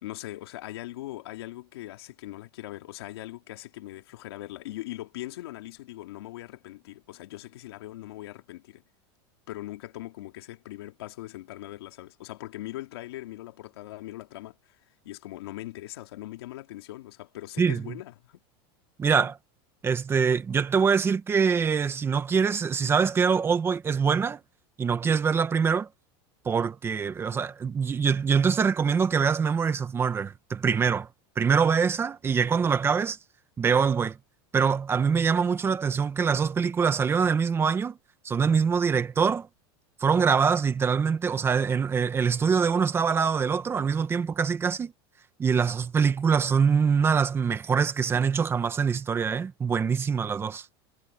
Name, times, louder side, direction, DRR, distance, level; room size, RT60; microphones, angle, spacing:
voice 1, 0.0-8.8 9.5-14.8 15.0-18.4, left 16 dB, 85° left, 3.2 m, -40 dB
voice 2, 17.6-17.9 19.0-19.4 19.8-24.4 24.8-25.9 26.4-31.1 31.4-33.2 33.6-34.2 34.5-38.0 38.2-39.5 40.0-44.9 45.4-50.7, right 6 dB, 20° right, 1.4 m, -24 dB
supercardioid pair, 140°, 13 cm